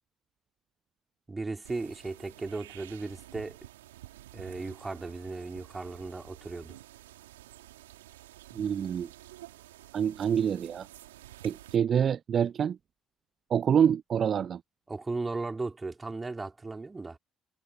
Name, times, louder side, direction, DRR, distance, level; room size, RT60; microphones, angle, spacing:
voice 1, 1.3-3.6 4.3-6.8 14.9-17.2, right 3 dB, 25° right, 3.9 m, -36 dB
sound 1, 1.6-11.8, right 15 dB, 85° right, 3.6 m, -51 dB
voice 2, 8.5-9.1 9.9-10.9 11.4-12.8 13.5-14.6, right 8 dB, 50° right, 0.4 m, -26 dB
hypercardioid pair, 50°, 0 cm